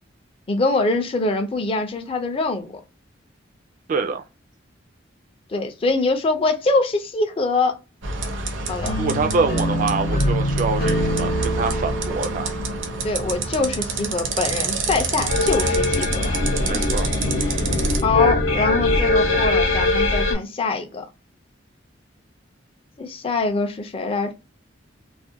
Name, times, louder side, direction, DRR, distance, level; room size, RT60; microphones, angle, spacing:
voice 1, 0.5-2.7 5.5-7.8 8.7-9.0 13.0-16.3 18.0-21.1 23.0-24.3, left 3 dB, 30° left, 0.4 m, -23 dB
voice 2, 3.9-4.2 9.0-12.5 16.6-17.1, right 4 dB, 45° right, 0.3 m, -25 dB
sound 1, 8.0-18.0, right 3 dB, 75° right, 0.6 m, -27 dB
sound 2, 8.8-13.9, equal, 50° left, 0.9 m, -27 dB
sound 3, 15.3-20.3, left 2 dB, 85° left, 0.7 m, -21 dB
2.4 x 2.1 x 2.6 m
head